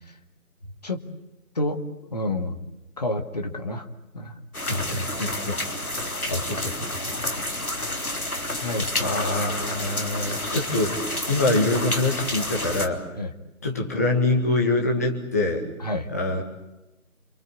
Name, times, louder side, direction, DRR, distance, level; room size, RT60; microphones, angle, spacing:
voice 1, 2.1-2.6 3.0-3.9 4.1-4.3 8.6-8.9 9.5-9.8 13.1-13.3 15.8-16.1, left 2 dB, 30° left, 5 dB, 2.1 m, -29 dB
sound 1, 4.5-12.9, left 1 dB, 80° left, 3.7 m, -30 dB
voice 2, 4.7-5.6 6.0-6.8 7.9-8.1 9.0-11.0 11.3-13.0 13.6-15.7 16.1-16.4, left 2 dB, 10° left, 0 dB, 1.9 m, -25 dB
28.0 x 23.5 x 8.5 m, 0.99 s
figure-of-eight pair, 165°, 42 cm